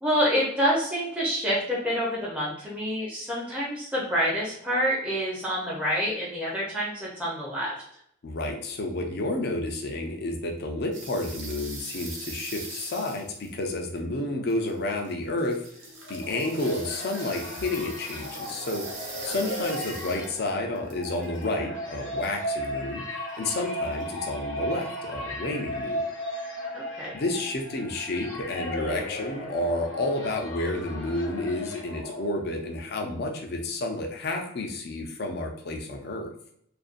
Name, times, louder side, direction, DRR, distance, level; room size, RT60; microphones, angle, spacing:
voice 1, 0.0-7.7 19.3-19.4 26.7-27.2, equal, 5° right, -6 dB, 0.6 m, -27 dB
voice 2, 8.2-15.6 16.1-18.9 19.2-23.0 23.4-26.0 27.1-36.3, left 2 dB, 55° left, 3 dB, 0.5 m, -30 dB
sound 1, 10.9-14.0 14.5-15.1 15.4-20.5 20.8-21.5 23.9-24.3, right 3 dB, 60° right, 0.7 m, -41 dB
sound 2, 15.8-32.8, equal, 80° left, 0.9 m, -36 dB
2.5 x 2.2 x 2.4 m, 0.72 s
head